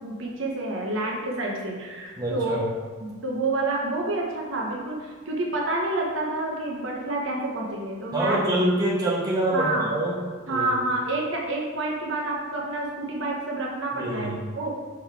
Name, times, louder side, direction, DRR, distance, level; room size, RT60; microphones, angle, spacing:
voice 1, 0.0-2.6 3.0-8.4 9.5-9.9 10.5-14.3 14.6-14.7, right 2 dB, 60° right, -2 dB, 1.0 m, -28 dB
voice 2, 2.2-2.6 8.1-10.2 10.5-10.8 13.9-14.4, right 1 dB, 20° right, -5 dB, 1.1 m, -25 dB
6.3 x 3.8 x 4.7 m, 1.5 s
head